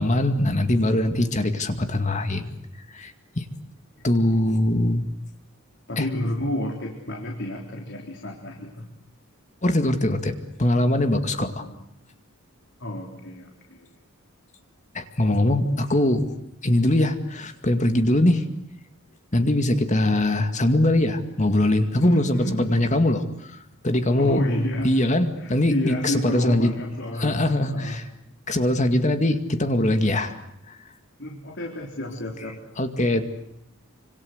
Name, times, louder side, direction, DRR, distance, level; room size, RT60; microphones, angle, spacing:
voice 1, 0.0-2.5 2.9-3.4 4.0-5.1 6.0-6.1 9.6-10.3 10.6-11.7 14.9-16.3 16.6-18.4 19.3-24.4 24.8-26.7 27.2-28.0 28.5-30.4 30.7-30.8 32.8-33.2, left 1 dB, 35° left, 8 dB, 2.2 m, -22 dB
voice 2, 5.9-8.9 11.4-11.8 12.8-13.9 22.0-22.7 24.2-25.0 25.4-28.0 31.2-32.6, left 1 dB, 55° left, 2 dB, 3.8 m, -30 dB
27.5 x 26.0 x 8.1 m, 0.77 s
head